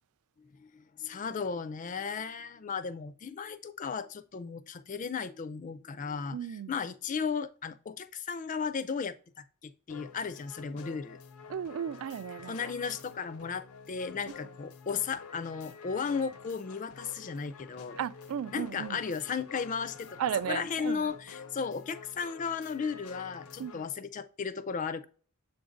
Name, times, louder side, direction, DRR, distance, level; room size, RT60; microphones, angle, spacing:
voice 1, 0.4-6.4 6.7-11.2 12.5-18.0 18.5-20.2 20.5-25.1, left 5 dB, 35° left, 0.4 m, -35 dB
voice 2, 6.3-6.7 11.5-12.6 14.3-14.4 18.0-19.0 20.2-21.0 23.6-23.8, right 9 dB, 70° right, 0.3 m, -35 dB
sound 1, 9.9-23.9, left 5 dB, 90° left, 0.7 m, -49 dB
7.6 x 2.6 x 4.9 m
head